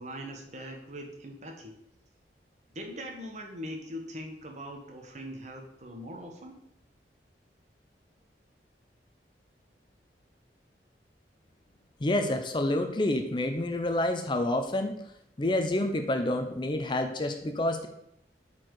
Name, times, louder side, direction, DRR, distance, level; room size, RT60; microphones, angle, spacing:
voice 1, 0.0-1.7 2.7-6.6, equal, 40° right, 3 dB, 1.2 m, -41 dB
voice 2, 12.0-14.9 15.4-17.9, left 1 dB, 25° left, 6 dB, 0.6 m, -28 dB
8.3 x 4.5 x 4.7 m, 0.75 s
head